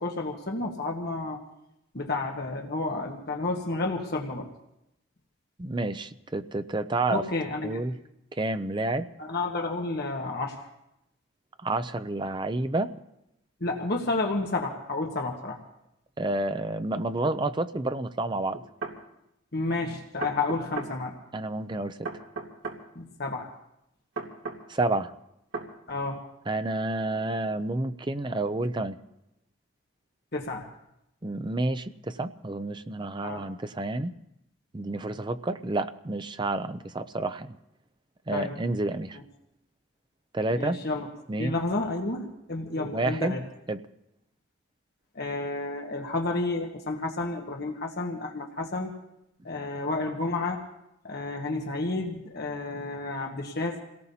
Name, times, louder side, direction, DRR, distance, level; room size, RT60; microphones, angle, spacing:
voice 1, 0.0-1.4 1.9-4.5 7.1-7.8 9.2-10.6 13.6-15.6 19.5-21.1 22.9-23.5 25.9-26.2 30.3-30.7 33.2-33.4 38.3-38.5 40.5-41.1 41.4-43.4 45.1-48.9 49.4-50.6 51.0-53.8, left 2 dB, 50° left, 1 dB, 1.4 m, -31 dB
voice 2, 5.6-7.2 7.6-8.0 8.3-9.1 11.6-12.9 16.2-18.6 21.3-22.2 24.7-25.1 26.5-29.0 31.2-34.1 34.7-37.6 38.3-39.2 40.3-40.8 41.3-41.6 42.8-43.4 43.7-43.8, right 2 dB, 25° right, 11 dB, 0.5 m, -29 dB
sound 1, 17.2-17.4 18.5-19.0 20.2-20.9 22.0-22.8 24.2-24.6 25.5-25.7, right 4 dB, 70° right, 2.7 m, -35 dB
28.0 x 18.0 x 2.8 m, 0.83 s
head